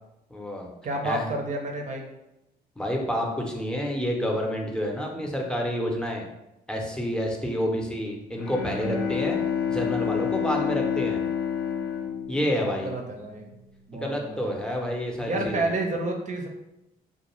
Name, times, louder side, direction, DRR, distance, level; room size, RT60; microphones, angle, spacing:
voice 1, 0.3-0.7 1.0-1.3 2.8-6.3 6.7-9.4 9.7-11.2 12.3-12.9 13.9-15.7, equal, 5° left, 0 dB, 0.7 m, -29 dB
voice 2, 0.8-2.1 12.5-13.5 13.9-14.5 15.2-16.5, right 2 dB, 45° right, 2 dB, 0.6 m, -30 dB
Bowed string instrument, 8.3-13.2, left 7 dB, 80° left, 0.6 m, -29 dB
2.4 x 2.2 x 3.0 m, 0.90 s
supercardioid pair, 55°, 18 cm